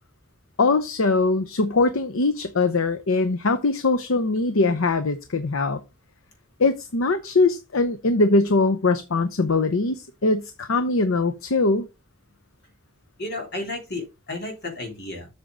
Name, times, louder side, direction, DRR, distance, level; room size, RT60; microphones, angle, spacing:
voice 1, 0.6-5.8 6.6-11.9, left 3 dB, 80° left, 0.8 m, -22 dB
voice 2, 13.2-15.3, left 2 dB, 55° left, 3.4 m, -32 dB
8.0 x 6.8 x 3.8 m
head